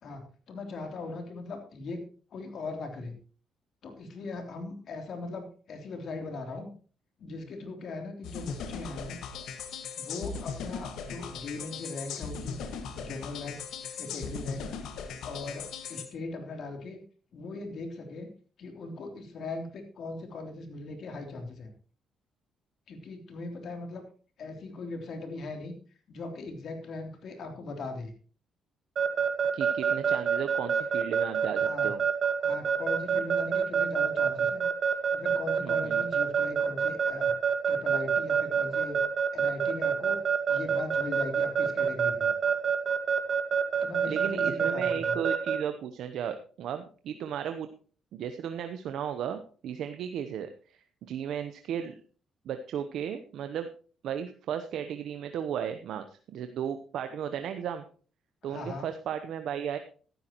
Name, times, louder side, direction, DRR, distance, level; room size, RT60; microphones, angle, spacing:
voice 1, 0.0-2.0 2.3-3.2 3.8-6.7 7.2-9.2 10.0-12.6 12.9-13.6 14.0-14.7 15.2-17.0 17.3-18.3 18.6-21.7 22.9-24.1 24.4-25.7 26.1-28.1 31.6-31.9 32.4-34.6 35.1-37.3 37.7-39.0 39.3-40.2 40.5-42.3 43.8-45.2 58.4-58.9, left 3 dB, 65° left, 4 dB, 3.2 m, -39 dB
sound 1, 8.2-16.1, left 6 dB, 85° left, 1.6 m, -38 dB
Keyboard (musical) / Alarm, 29.0-45.6, right 7 dB, 55° right, 1.9 m, -26 dB
voice 2, 29.5-32.0 35.6-36.0 44.0-47.7 48.1-51.9 52.4-53.7 54.0-57.8 58.4-59.8, right 9 dB, 75° right, 8 dB, 0.9 m, -35 dB
14.0 x 12.0 x 3.0 m, 0.40 s
cardioid pair, 90°, 0 cm